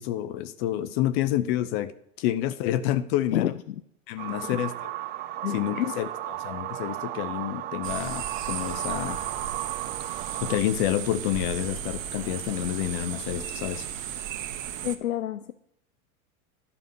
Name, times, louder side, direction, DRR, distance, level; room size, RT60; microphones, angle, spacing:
voice 1, 0.0-1.9 2.2-3.6 4.1-4.9 5.5-6.1 6.4-9.2 10.4-13.9, left 13 dB, 45° left, 13 dB, 0.7 m, -28 dB
sound 1, 4.2-10.6, right 14 dB, 20° right, 0.4 m, -34 dB
voice 2, 4.3-4.6 5.4-5.9 14.8-15.5, left 12 dB, 80° left, 12 dB, 0.6 m, -29 dB
sound 2, 7.8-15.0, right 10 dB, 65° right, 1.1 m, -35 dB
11.5 x 4.9 x 6.6 m, 0.75 s
figure-of-eight pair, 90°, 42 cm